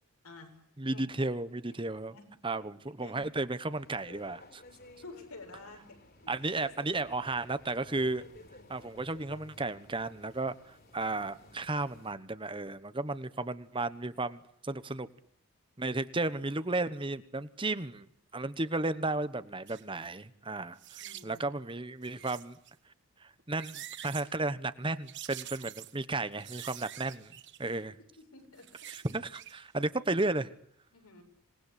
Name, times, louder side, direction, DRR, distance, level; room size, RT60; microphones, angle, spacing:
voice 1, 0.2-0.6 0.9-1.0 2.1-2.3 3.0-3.2 5.0-6.0 21.0-21.5 27.6-27.8 28.2-28.7 30.9-31.2, left 3 dB, 80° left, 4 dB, 7.1 m, -50 dB
voice 2, 0.8-2.1 2.4-4.6 6.3-8.2 8.7-15.1 15.8-18.1 18.3-22.6 23.2-27.3 27.6-28.0 28.9-30.5, right 2 dB, 20° right, 13 dB, 1.1 m, -34 dB
sound 1, 3.7-12.1, left 2 dB, 45° left, 4.4 m, -54 dB
sound 2, 19.7-19.8 20.8-21.4 22.0-22.7 23.4-24.3 25.1-26.0 26.4-27.8 28.4-29.6 29.9-30.0, right 12 dB, 50° right, 1.4 m, -46 dB
27.0 x 20.0 x 10.0 m, 0.73 s
head